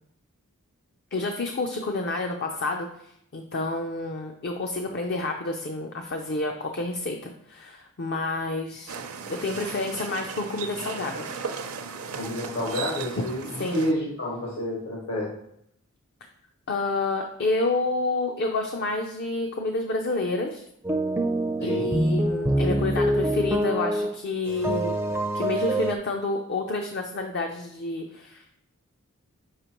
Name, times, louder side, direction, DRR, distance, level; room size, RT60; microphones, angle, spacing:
voice 1, 1.1-3.1 3.3-9.0 9.3-11.4 13.6-13.8 16.7-20.6 21.6-25.0 25.3-28.6, left 2 dB, 50° left, 3 dB, 0.5 m, -29 dB
sound 1, 8.9-13.9, right 6 dB, 70° right, 0.6 m, -36 dB
voice 2, 12.2-15.4 21.6-21.9, left 1 dB, 75° left, -5 dB, 1.6 m, -29 dB
sound 2, 20.8-24.2 24.5-25.9, right 1 dB, 10° right, 0.4 m, -25 dB
6.5 x 5.0 x 3.0 m, 0.73 s
head